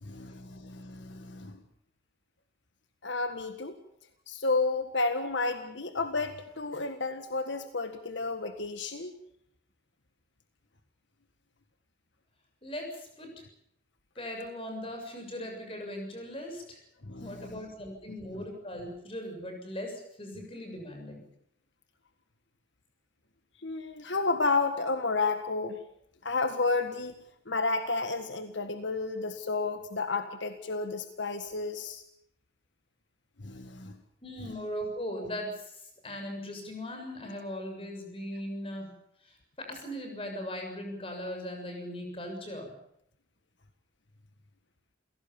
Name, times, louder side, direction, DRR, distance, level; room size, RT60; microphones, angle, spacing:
voice 1, 0.0-1.6 3.0-3.8 4.3-9.1 17.0-17.6 18.3-18.4 23.6-25.8 26.2-27.1 27.5-32.0 33.4-33.9, left 3 dB, 75° left, 8 dB, 1.7 m, -31 dB
voice 2, 12.6-13.3 14.2-16.8 17.2-21.2 34.2-38.9 39.2-42.7, equal, 30° left, 3 dB, 7.0 m, -39 dB
28.5 x 17.5 x 7.2 m, 0.74 s
head